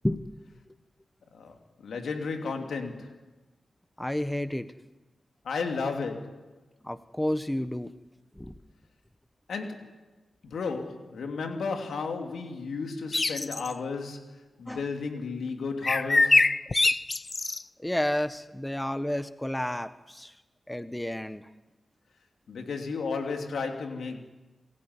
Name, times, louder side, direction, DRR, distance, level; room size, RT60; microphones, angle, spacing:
voice 1, 1.3-3.2 5.4-6.5 9.5-9.9 10.4-16.5 22.5-24.2, left 4 dB, 80° left, 2.9 m, -33 dB
voice 2, 4.0-4.7 6.8-7.9 8.4-8.5 14.7-14.8 17.8-20.3 20.7-21.5, left 1 dB, 10° left, 1.4 m, -31 dB
sound 1, 13.1-13.7 15.8-17.6, left 3 dB, 45° left, 0.7 m, -23 dB
28.5 x 15.5 x 9.8 m
supercardioid pair, 40°, 0 cm